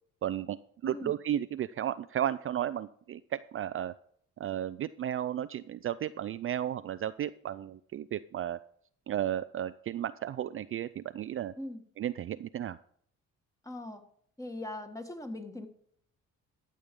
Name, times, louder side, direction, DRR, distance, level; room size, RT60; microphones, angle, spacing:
voice 1, 0.2-0.6 0.8-3.9 4.4-8.6 9.1-11.5 12.0-12.8, right 11 dB, 45° right, 13 dB, 0.4 m, -34 dB
voice 2, 0.8-1.1 11.6-11.8 13.6-14.0 14.4-15.7, left 1 dB, 10° left, 6 dB, 1.6 m, -40 dB
13.0 x 6.5 x 5.2 m, 0.65 s
cardioid pair, 90°, 30 cm